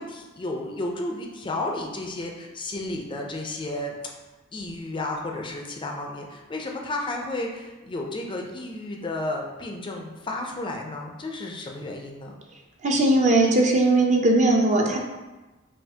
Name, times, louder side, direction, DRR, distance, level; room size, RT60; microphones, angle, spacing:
voice 1, 0.0-3.9 4.5-12.3, left 2 dB, 25° left, 1 dB, 0.4 m, -32 dB
voice 2, 12.8-15.0, right 2 dB, 40° right, 0 dB, 0.5 m, -19 dB
5.5 x 2.4 x 2.7 m, 1.1 s
head